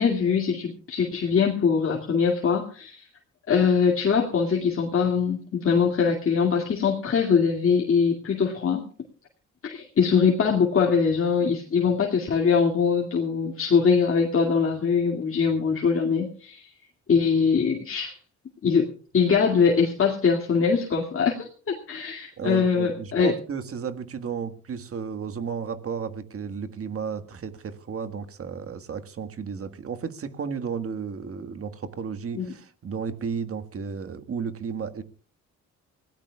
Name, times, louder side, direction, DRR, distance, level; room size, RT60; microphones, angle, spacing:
voice 1, 0.0-3.1 3.5-8.8 9.6-16.7 17.1-18.2 18.6-23.3 32.3-32.5, left 6 dB, 45° left, 0 dB, 2.4 m, -22 dB
voice 2, 22.4-35.0, right 6 dB, 50° right, 8 dB, 1.7 m, -33 dB
25.5 x 17.0 x 2.3 m, 0.41 s
cardioid pair, 90°, 30 cm